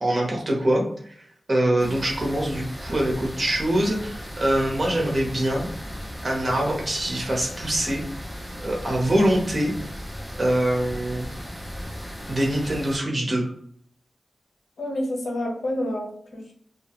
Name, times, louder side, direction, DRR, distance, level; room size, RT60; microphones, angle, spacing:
voice 1, 0.0-1.2 1.5-5.7 6.2-8.0 8.6-9.7 10.4-11.3 12.3-13.5, right 1 dB, 35° right, -1 dB, 0.9 m, -24 dB
sound 1, 1.8-13.0, equal, ahead, 0.6 m, -36 dB
voice 2, 14.8-16.5, left 1 dB, 80° left, 0 dB, 0.8 m, -28 dB
2.4 x 2.3 x 2.8 m, 0.62 s
wide cardioid pair, 120°, 0 cm